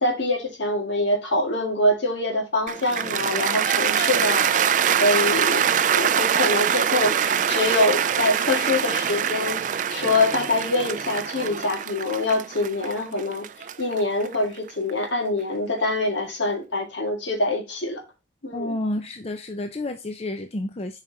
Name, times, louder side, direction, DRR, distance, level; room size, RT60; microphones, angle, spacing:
voice 1, 0.0-9.6 9.9-13.5 13.8-18.0 18.4-18.8, left 2 dB, 75° left, 2.0 m, -25 dB
Cheering / Applause, 2.7-14.9, right 8 dB, 40° right, 0.3 m, -24 dB
voice 2, 18.5-21.0, left 1 dB, 30° left, 0.6 m, -30 dB
7.3 x 4.9 x 2.8 m
head